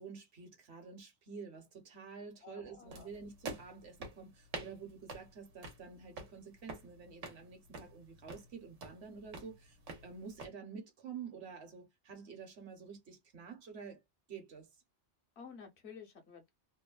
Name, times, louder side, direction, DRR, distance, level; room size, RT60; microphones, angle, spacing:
voice 1, 0.0-9.8 10.0-14.0 14.3-14.7, right 5 dB, 65° right, 1.1 m, -49 dB
voice 2, 2.4-3.1 15.4-16.5, left 6 dB, 65° left, 1.2 m, -52 dB
sound 1, 2.9-10.5, right 3 dB, 90° right, 1.2 m, -48 dB
3.1 x 2.1 x 2.3 m
omnidirectional pair, 1.2 m